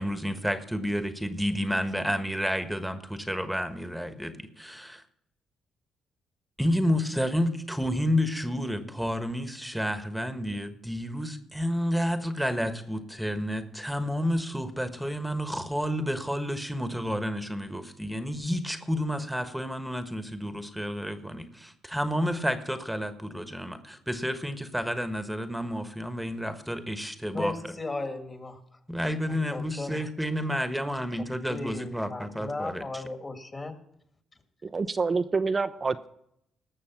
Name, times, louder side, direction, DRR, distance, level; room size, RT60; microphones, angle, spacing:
voice 1, 0.0-5.0 6.6-27.7 28.9-33.0, equal, ahead, 9 dB, 1.3 m, -30 dB
voice 2, 27.3-28.6 29.2-30.1 31.5-33.8, left 2 dB, 30° left, 6 dB, 2.1 m, -36 dB
voice 3, 34.6-36.1, right 4 dB, 35° right, 9 dB, 0.5 m, -27 dB
18.5 x 6.8 x 5.9 m, 0.76 s
supercardioid pair, 75°, 0 cm